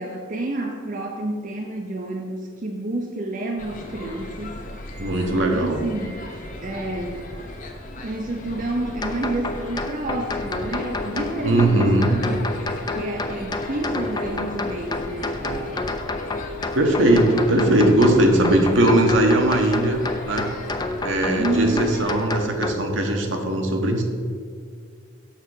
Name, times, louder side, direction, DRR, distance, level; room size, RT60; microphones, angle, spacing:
voice 1, 0.0-4.6 5.4-6.2 6.6-7.2 8.0-12.6 12.9-15.8 21.3-21.9, right 2 dB, 40° right, 2 dB, 0.6 m, -29 dB
sound 1, 3.6-22.3, left 1 dB, 40° left, 0.8 m, -37 dB
voice 2, 5.0-5.8 11.4-12.1 16.7-20.5 21.0-24.0, right 1 dB, 70° right, 3 dB, 1.1 m, -19 dB
sound 2, 9.0-22.7, left 3 dB, 20° left, 0.4 m, -30 dB
6.6 x 6.4 x 4.8 m, 2.1 s
head